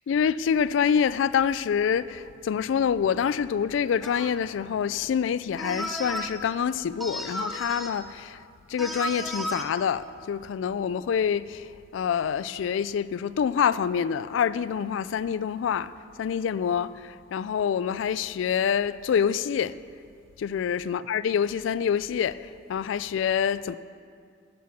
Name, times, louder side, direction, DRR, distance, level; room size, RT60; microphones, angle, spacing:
voice 1, 0.1-8.4 8.7-15.9 16.2-19.7 20.4-23.7, left 7 dB, 80° left, 0.3 m, -26 dB
sound 1, 4.0-4.4 5.6-6.3 7.0-8.0 8.8-9.6, equal, ahead, 0.7 m, -33 dB
10.0 x 7.4 x 7.2 m
head